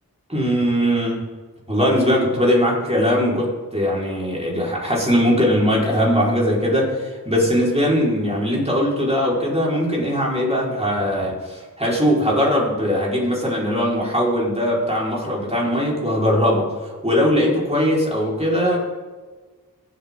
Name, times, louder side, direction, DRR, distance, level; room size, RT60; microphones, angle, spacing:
voice 1, 0.3-1.2 1.7-18.8, equal, 15° right, -4 dB, 4.5 m, -20 dB
22.5 x 8.4 x 3.8 m, 1.4 s
wide cardioid pair, 40°, 36 cm